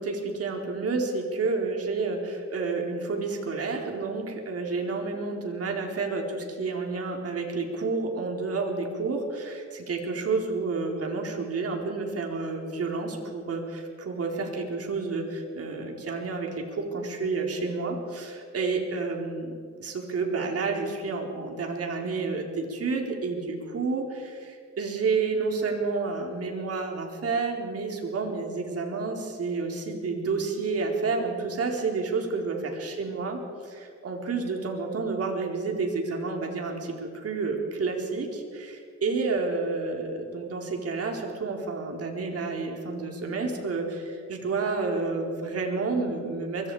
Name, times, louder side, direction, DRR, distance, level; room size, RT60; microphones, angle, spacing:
voice 1, 0.0-46.7, right 4 dB, 50° right, 2 dB, 4.4 m, -30 dB
23.5 x 23.0 x 5.0 m, 2.3 s
cardioid pair, 90°, 30 cm